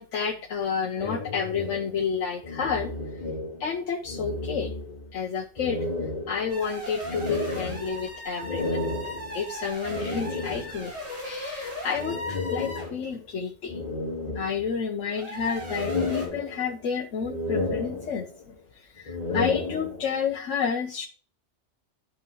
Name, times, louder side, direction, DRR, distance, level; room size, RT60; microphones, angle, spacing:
voice 1, 0.0-2.9 3.6-4.7 5.1-5.8 6.3-8.8 9.3-10.9 11.2-13.8 14.3-18.3 18.8-21.1, left 6 dB, 85° left, 2 dB, 1.2 m, -30 dB
sound 1, 1.0-3.8 4.0-5.2 5.6-11.0 12.0-13.3 13.7-15.0 15.4-16.9 17.2-18.5 19.0-20.3, left 3 dB, 30° left, 1.9 m, -33 dB
sound 2, 6.5-13.0 15.0-16.3, left 1 dB, 30° right, 4.0 m, -37 dB
12.0 x 4.7 x 3.2 m, 0.40 s
omnidirectional pair, 1.3 m